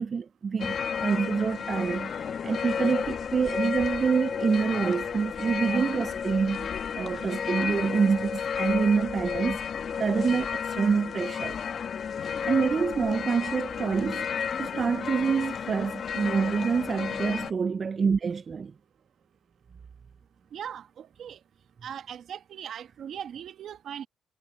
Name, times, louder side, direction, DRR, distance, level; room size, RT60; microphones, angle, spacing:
voice 1, 0.0-6.7 7.0-9.6 10.0-11.6 12.5-14.2 14.6-18.7, right 5 dB, 45° right, 0.4 m, -27 dB
sound 1, 0.6-17.5, left 7 dB, 55° left, 1.1 m, -32 dB
voice 2, 20.5-21.4 21.8-24.1, right 9 dB, 65° right, 1.2 m, -39 dB
cardioid pair, 90°, 0 cm